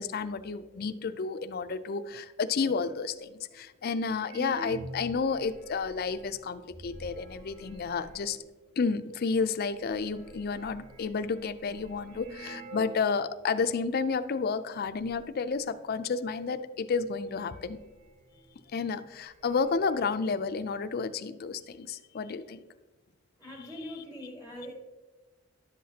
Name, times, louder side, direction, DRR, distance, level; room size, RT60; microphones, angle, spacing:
voice 1, 0.0-8.4 8.8-17.8 18.7-22.6, left 5 dB, 50° left, 12 dB, 0.4 m, -31 dB
voice 2, 0.7-1.1 3.7-4.0 23.4-24.7, left 1 dB, 10° right, -1 dB, 1.2 m, -44 dB
sound 1, 3.5-3.6 4.2-8.5 9.2-9.3 9.6-13.1 13.4-13.5 14.1-14.5 14.8-15.2 16.5-16.6 17.0-18.6 18.9-19.0 19.2-19.9, right 2 dB, 45° right, 1.8 m, -47 dB
11.0 x 7.5 x 2.8 m, 1.2 s
head